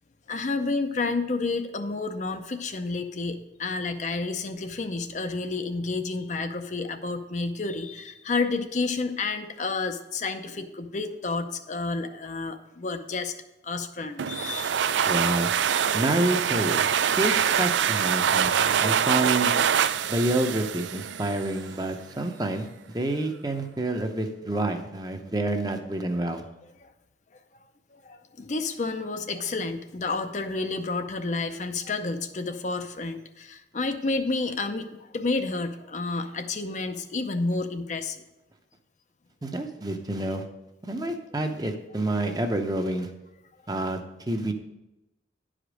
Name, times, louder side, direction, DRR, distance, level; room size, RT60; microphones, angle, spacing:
voice 1, 0.3-13.3 13.6-14.8 18.9-19.0 26.8-26.9 27.9-38.2 42.1-42.2, left 3 dB, 40° left, 7 dB, 0.5 m, -30 dB
sound 1, 14.2-21.7, right 8 dB, 85° right, 0.4 m, -24 dB
voice 2, 15.1-15.5 15.9-19.5 20.1-22.7 22.9-26.4 39.4-40.4 40.8-43.1 43.7-44.0 44.3-44.5, right 1 dB, 20° right, 5 dB, 0.7 m, -28 dB
10.5 x 5.1 x 6.2 m, 0.96 s
head